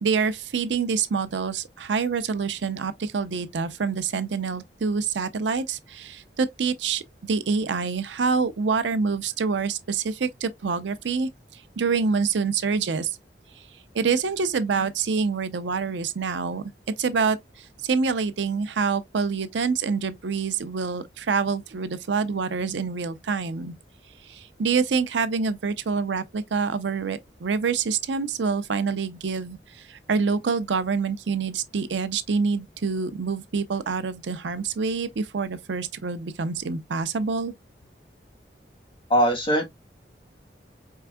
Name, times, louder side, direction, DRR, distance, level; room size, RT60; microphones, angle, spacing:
voice 1, 0.0-7.0 7.3-13.1 13.9-16.6 17.0-23.7 24.2-37.5, right 5 dB, 85° right, 0.5 m, -26 dB
voice 2, 39.1-39.7, equal, 30° left, 1.4 m, -20 dB
4.6 x 3.4 x 2.2 m
head